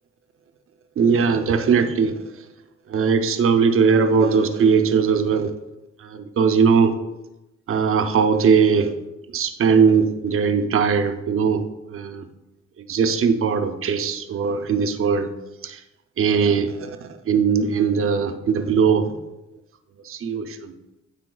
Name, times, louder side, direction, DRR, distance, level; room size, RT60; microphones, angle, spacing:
voice 1, 1.0-2.2 2.9-5.5 6.1-6.9 7.7-8.9 9.3-11.6 11.9-12.2 12.9-15.3 15.6-15.8 16.2-19.1 20.1-20.7, right 6 dB, 45° right, 7 dB, 0.6 m, -19 dB
9.7 x 4.1 x 2.3 m, 0.96 s
cardioid pair, 90°, 30 cm